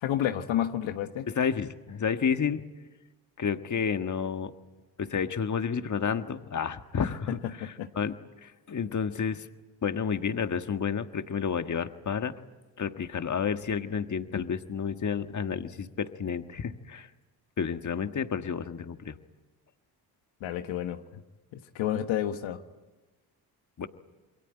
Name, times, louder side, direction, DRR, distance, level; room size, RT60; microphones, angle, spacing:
voice 1, 0.0-1.3 7.3-7.9 20.4-21.2 21.5-22.6, left 11 dB, 75° left, 7 dB, 1.4 m, -30 dB
voice 2, 1.3-2.6 3.4-4.5 5.0-8.1 8.4-9.5 9.8-12.3 12.8-17.1 17.6-19.2 23.8-23.9, left 6 dB, 40° left, 8 dB, 1.6 m, -30 dB
27.5 x 22.5 x 9.2 m, 1.1 s
supercardioid pair, 60°, 46 cm